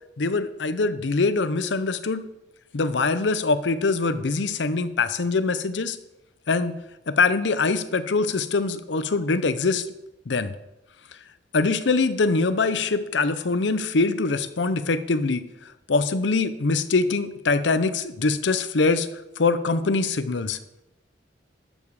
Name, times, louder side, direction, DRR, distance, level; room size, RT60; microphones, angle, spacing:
voice 1, 0.2-2.2 2.7-6.0 6.5-6.7 7.1-9.8 10.3-10.5 11.5-15.4 15.9-19.1 19.4-20.6, left 3 dB, 80° left, 12 dB, 0.7 m, -23 dB
12.5 x 7.1 x 4.8 m, 0.92 s
head